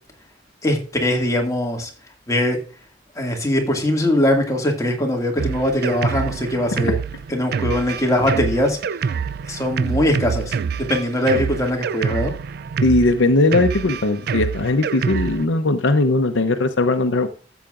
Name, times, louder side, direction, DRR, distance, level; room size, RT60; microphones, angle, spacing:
voice 1, 0.6-1.9 2.3-2.6 3.2-7.0 7.3-8.8 9.5-12.3, left 1 dB, 20° left, 2.2 m, -21 dB
Drum kit, 5.4-15.5, right 6 dB, 55° right, 0.4 m, -26 dB
voice 2, 12.8-17.3, left 2 dB, 80° left, 0.8 m, -18 dB
13.0 x 8.0 x 2.5 m
head